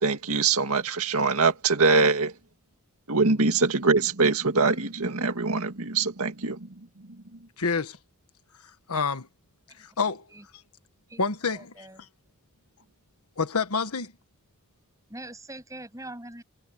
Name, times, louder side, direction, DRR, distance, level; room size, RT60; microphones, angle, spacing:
voice 1, 0.0-2.3 3.1-6.6, right 4 dB, 80° right, 2.0 m, -23 dB
voice 2, 7.6-8.0 8.9-9.3 9.8-10.3 11.2-11.9 13.4-14.1, left 4 dB, 90° left, 1.4 m, -28 dB
voice 3, 11.1-12.0 15.1-16.4, right 1 dB, 15° right, 7.4 m, -43 dB
head